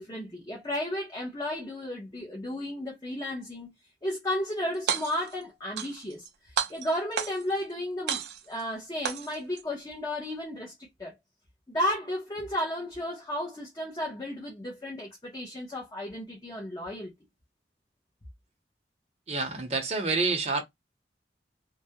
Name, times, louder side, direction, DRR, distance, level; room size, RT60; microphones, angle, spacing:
voice 1, 0.0-3.7 4.0-11.1 11.7-17.1, left 1 dB, 20° left, 0.6 m, -33 dB
sound 1, 4.7-5.3 5.8-6.3 6.6-7.6 8.1-8.6 9.0-9.6, right 7 dB, 65° right, 0.4 m, -31 dB
voice 2, 19.3-20.6, right 3 dB, 35° right, 0.7 m, -28 dB
2.3 x 2.0 x 2.7 m
head